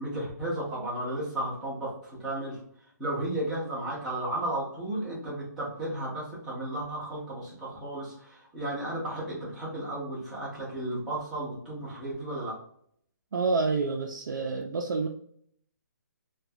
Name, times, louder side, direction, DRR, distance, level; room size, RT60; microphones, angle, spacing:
voice 1, 0.0-2.6 3.0-12.5, right 1 dB, 5° right, -9 dB, 0.5 m, -34 dB
voice 2, 13.3-15.1, right 4 dB, 80° right, 1 dB, 0.4 m, -28 dB
2.4 x 2.2 x 2.6 m, 0.65 s
hypercardioid pair, 175°, 10 cm